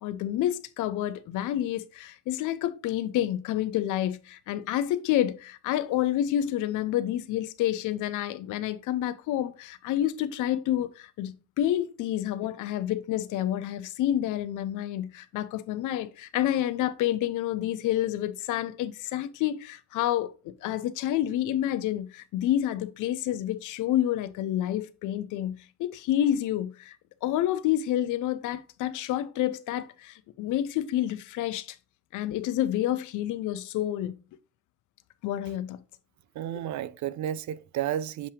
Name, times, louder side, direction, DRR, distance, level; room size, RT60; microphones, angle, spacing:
voice 1, 0.0-27.0 27.2-31.8 32.1-34.1 35.2-35.8 36.5-36.6, left 12 dB, 90° left, 0.6 m, -29 dB
voice 2, 36.3-38.3, right 11 dB, 70° right, 0.5 m, -32 dB
7.2 x 2.8 x 4.9 m
cardioid pair, 90°, 30 cm